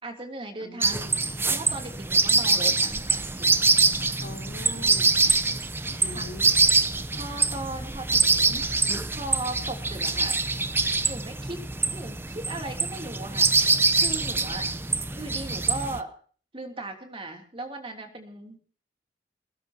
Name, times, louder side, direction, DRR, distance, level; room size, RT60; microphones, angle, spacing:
voice 1, 0.0-1.1 1.4-3.6 6.1-6.3 7.1-10.4 11.0-14.7 15.1-16.1 16.5-18.6, right 2 dB, 30° right, 3 dB, 3.2 m, -38 dB
voice 2, 0.6-1.2 4.2-5.3 6.0-6.6, left 2 dB, 70° left, 2 dB, 3.7 m, -42 dB
sound 1, 0.8-16.0, right 3 dB, 15° right, 0.7 m, -24 dB
22.5 x 20.0 x 2.9 m, 0.43 s
head